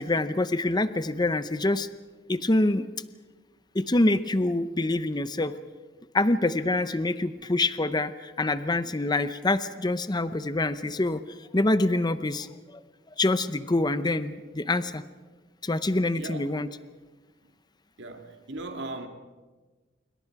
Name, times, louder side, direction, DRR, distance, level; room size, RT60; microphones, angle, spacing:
voice 1, 0.0-1.9 2.3-2.9 3.7-5.6 6.1-11.2 11.5-12.5 12.7-12.8 13.2-15.0 15.6-16.7, left 2 dB, 20° left, 0.7 m, -25 dB
voice 2, 16.1-16.5 17.4-17.5 18.0-19.1, right 2 dB, 60° right, 2.2 m, -38 dB
27.0 x 23.5 x 4.8 m
head